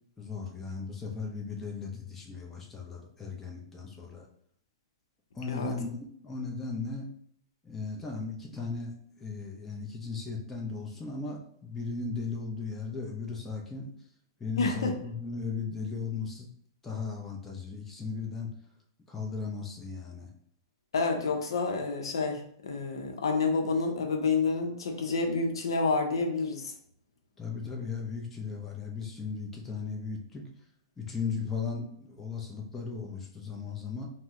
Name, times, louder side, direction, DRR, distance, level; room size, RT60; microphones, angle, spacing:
voice 1, 0.2-4.3 5.3-6.0 6.2-7.1 7.6-8.9 9.2-13.9 14.4-16.5 16.8-18.5 19.1-20.3 27.4-30.4 31.0-34.1, left 5 dB, 10° left, -2 dB, 0.5 m, -36 dB
voice 2, 14.6-14.9 20.9-26.7, left 4 dB, 90° left, 3 dB, 0.6 m, -29 dB
2.8 x 2.0 x 3.5 m, 0.65 s
hypercardioid pair, 145°, 2 cm